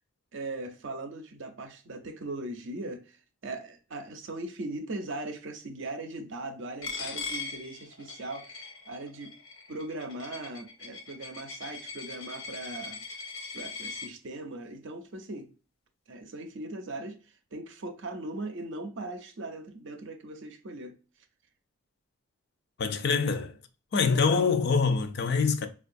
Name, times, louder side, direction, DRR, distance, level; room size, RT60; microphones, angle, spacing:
voice 1, 0.3-9.4 9.7-13.0 13.5-15.5 16.1-17.2 17.5-21.0, right 2 dB, 60° right, 0.6 m, -39 dB
Coin (dropping), 6.8-14.1, left 4 dB, 70° left, 0.8 m, -40 dB
voice 2, 22.8-23.6 23.9-25.7, left 5 dB, 50° left, 0.4 m, -25 dB
4.5 x 2.4 x 2.5 m
head